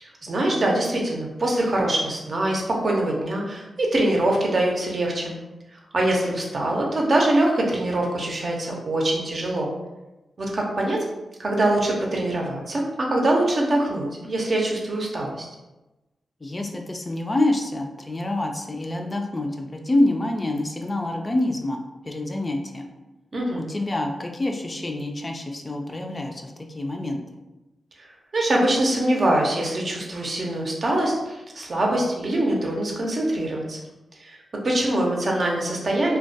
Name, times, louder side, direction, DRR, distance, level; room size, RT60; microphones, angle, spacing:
voice 1, 0.0-5.3 5.9-9.7 10.4-11.1 11.4-15.5 23.3-23.6 28.0-28.1 28.3-33.8 34.2-34.4 34.6-36.2, right 1 dB, 55° right, -1 dB, 0.6 m, -23 dB
voice 2, 16.4-22.9 23.6-27.2, left 1 dB, 35° left, 2 dB, 0.3 m, -27 dB
2.2 x 2.1 x 2.6 m, 1.0 s
cardioid pair, 45°, 0 cm